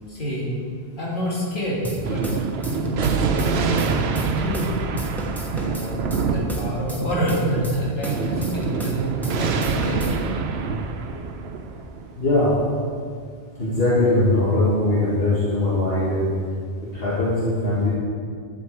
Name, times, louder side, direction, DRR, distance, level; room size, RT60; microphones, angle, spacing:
voice 1, 0.1-0.5 1.0-2.3 2.6-4.7 5.5-10.2, equal, 55° left, -6 dB, 2.6 m, -28 dB
sound 1, 1.8-4.7 5.0-9.0 9.2-10.2, right 1 dB, ahead, 1.2 m, -32 dB
Thunder, 2.0-12.9, right 5 dB, 90° right, 0.9 m, -26 dB
voice 2, 12.2-12.5 13.6-16.2 16.9-17.9, left 2 dB, 70° left, -8 dB, 2.1 m, -20 dB
11.5 x 7.3 x 4.7 m, 2.1 s
omnidirectional pair, 1.0 m